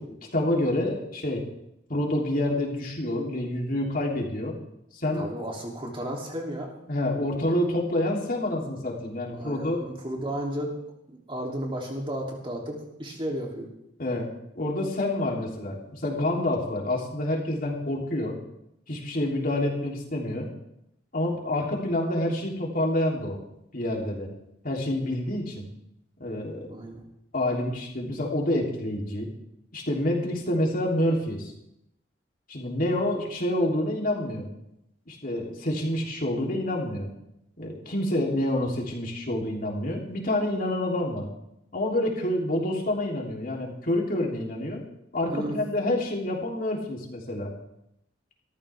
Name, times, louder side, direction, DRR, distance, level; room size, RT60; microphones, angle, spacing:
voice 1, 0.0-1.5 1.9-4.5 4.9-5.3 6.9-9.8 14.0-18.4 18.9-20.5 21.1-23.4 23.7-24.3 24.6-25.7 26.2-26.7 27.3-29.3 29.7-31.5 32.5-34.5 35.1-37.1 37.6-41.3 41.7-44.8 45.1-47.5, left 1 dB, 50° left, -1 dB, 3.3 m, -28 dB
voice 2, 5.1-6.7 9.3-10.7 11.1-13.7 26.7-27.0 45.3-45.6, right 1 dB, 30° right, -1 dB, 3.1 m, -33 dB
21.0 x 14.0 x 3.6 m, 0.82 s
head